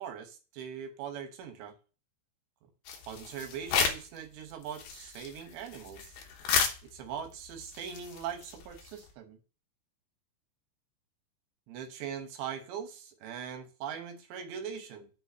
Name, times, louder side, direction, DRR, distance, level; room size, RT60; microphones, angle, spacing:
voice 1, 0.0-1.7 3.1-6.2 6.8-9.4 11.7-15.1, right 8 dB, 75° right, 3.1 m, -41 dB
sound 1, 2.9-4.2 4.5-9.1, left 6 dB, 75° left, 2.1 m, -33 dB
6.5 x 5.3 x 6.5 m
omnidirectional pair, 5.3 m